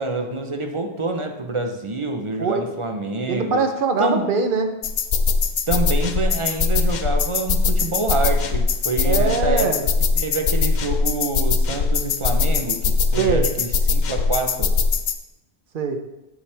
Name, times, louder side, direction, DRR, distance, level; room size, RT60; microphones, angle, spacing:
voice 1, 0.0-3.7 4.0-4.3 5.7-9.9 10.2-14.8, right 3 dB, 35° right, 0.6 m, -26 dB
voice 2, 3.3-4.7 9.0-9.9 13.2-13.5 15.7-16.0, right 4 dB, 55° right, 0.9 m, -22 dB
sound 1, 4.8-15.1, left 4 dB, 55° left, 0.6 m, -21 dB
7.9 x 7.1 x 3.3 m
omnidirectional pair, 1.1 m